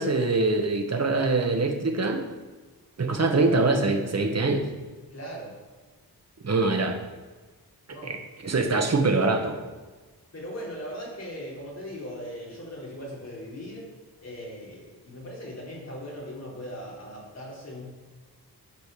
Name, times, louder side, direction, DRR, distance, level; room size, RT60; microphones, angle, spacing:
voice 1, 0.0-2.3 3.0-4.6 6.4-7.0 8.0-8.2 8.4-9.6, right 3 dB, 40° right, 4 dB, 1.3 m, -24 dB
voice 2, 5.1-5.5 7.9-8.2 8.6-9.0 10.3-13.9 14.2-17.8, equal, 40° left, -5 dB, 3.9 m, -39 dB
12.0 x 5.2 x 6.6 m, 1.3 s
wide cardioid pair, 135°, 38 cm